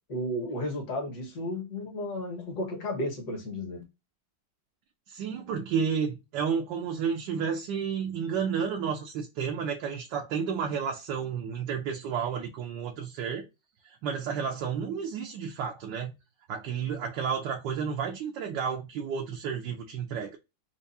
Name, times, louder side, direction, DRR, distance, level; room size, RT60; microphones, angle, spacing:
voice 1, 0.1-3.8, left 1 dB, 60° left, 2.0 m, -33 dB
voice 2, 5.1-13.5 13.8-16.1 16.5-20.4, right 6 dB, 75° right, 1.3 m, -31 dB
4.6 x 2.5 x 2.6 m
omnidirectional pair, 2.1 m